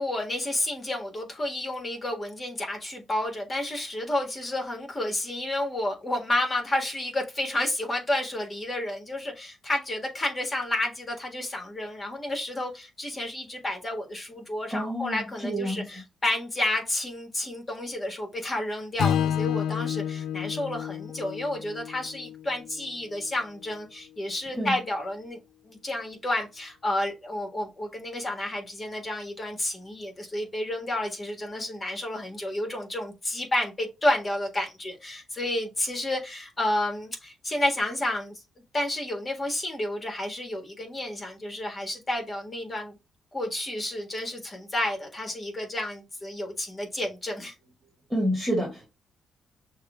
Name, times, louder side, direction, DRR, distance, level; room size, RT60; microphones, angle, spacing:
voice 1, 0.0-25.4 25.6-38.3 38.7-43.0 43.3-47.5, left 1 dB, 25° left, 1.6 m, -30 dB
voice 2, 14.7-15.9 24.5-24.8 48.1-48.9, equal, 5° right, 2.0 m, -28 dB
Strum, 19.0-23.3, left 9 dB, 85° left, 0.4 m, -30 dB
6.3 x 2.3 x 3.5 m
cardioid pair, 110°, 0 cm